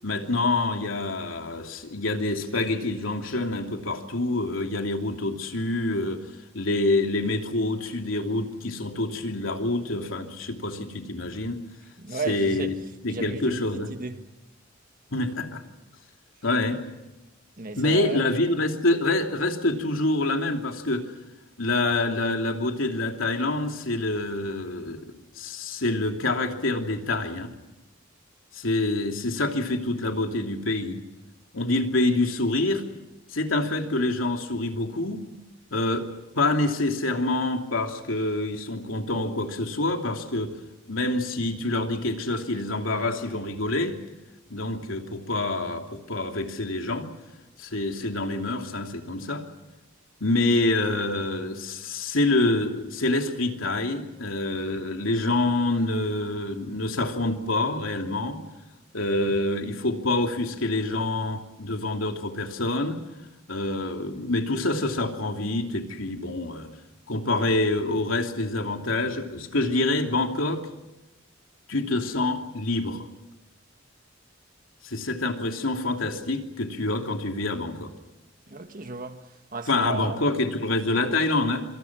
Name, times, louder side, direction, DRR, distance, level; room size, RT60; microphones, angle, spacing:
voice 1, 0.0-6.2 6.5-11.6 12.1-12.7 13.0-13.9 15.1-15.6 16.4-16.8 17.8-21.1 21.6-25.1 25.4-27.5 28.5-31.0 31.5-32.8 33.3-35.2 35.7-36.1 36.3-40.5 40.9-44.0 44.5-47.1 47.6-49.4 50.2-58.4 58.9-63.0 63.5-66.7 67.1-70.6 71.7-73.1 74.8-77.9 79.7-81.7, left 2 dB, 85° left, 3.0 m, -26 dB
voice 2, 12.0-12.7 13.1-14.3 17.6-18.2 78.5-80.2, right 3 dB, 45° right, 1.7 m, -34 dB
26.5 x 26.5 x 6.1 m
head